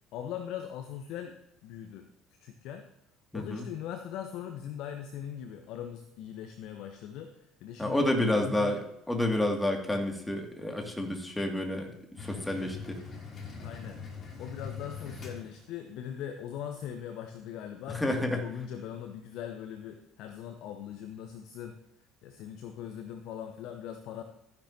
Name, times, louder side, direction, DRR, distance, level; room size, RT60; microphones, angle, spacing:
voice 1, 0.1-1.4 1.6-2.1 2.4-2.9 3.3-8.8 13.6-14.0 14.4-21.8 22.2-24.2, left 9 dB, 60° left, 6 dB, 0.9 m, -40 dB
voice 2, 3.3-3.6 7.8-8.8 9.1-11.9 12.2-13.0 17.9-18.4, left 1 dB, 10° left, 3 dB, 2.3 m, -29 dB
sound 1, 12.2-16.0, left 5 dB, 40° left, 2.8 m, -42 dB
13.5 x 10.5 x 2.8 m, 0.80 s
figure-of-eight pair, 60°, 0 cm